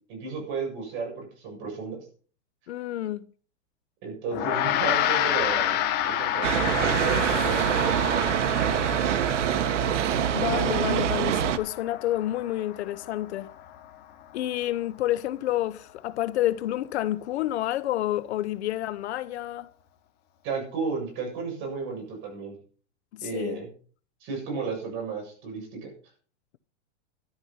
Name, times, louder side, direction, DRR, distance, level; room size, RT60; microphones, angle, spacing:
voice 1, 0.1-2.0 4.0-6.6 7.0-8.3 20.4-22.6 23.2-23.7 24.2-25.9, right 5 dB, 30° right, 7.5 m, -33 dB
voice 2, 2.7-3.2 10.3-13.5 14.3-19.7 23.1-23.6, left 14 dB, 65° left, 0.8 m, -29 dB
Gong, 4.3-13.9, left 11 dB, 30° left, 1.4 m, -30 dB
sound 1, 6.4-11.6, right 10 dB, 85° right, 1.3 m, -25 dB
13.5 x 11.0 x 5.5 m
supercardioid pair, 165°, 35 cm